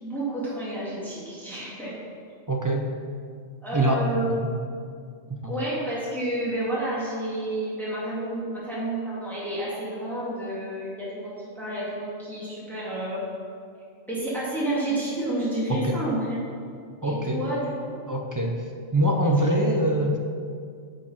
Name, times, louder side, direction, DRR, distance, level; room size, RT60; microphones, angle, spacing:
voice 1, 0.0-1.9 3.6-4.3 5.5-13.3 14.1-16.4 17.0-17.9 19.3-19.4, right 1 dB, ahead, -9 dB, 2.2 m, -30 dB
voice 2, 2.5-2.9 3.7-4.5 5.3-5.5 15.7-15.9 17.0-17.4 18.1-18.6 18.9-20.2, right 1 dB, 25° right, 2 dB, 0.4 m, -24 dB
9.0 x 5.3 x 5.6 m, 2.2 s
omnidirectional pair, 1.3 m